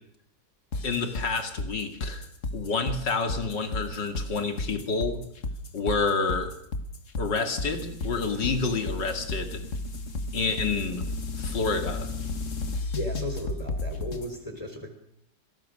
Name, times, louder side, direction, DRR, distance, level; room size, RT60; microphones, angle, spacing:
sound 1, 0.7-14.3, left 2 dB, 45° left, 1.9 m, -33 dB
voice 1, 0.8-2.3 2.5-5.2 5.7-6.5 7.2-9.6 10.3-11.0 11.4-12.1, left 4 dB, 75° left, 7 dB, 3.0 m, -28 dB
voice 2, 12.9-14.9, equal, 20° left, 3 dB, 3.8 m, -36 dB
25.5 x 18.0 x 6.5 m, 0.73 s
omnidirectional pair, 1.9 m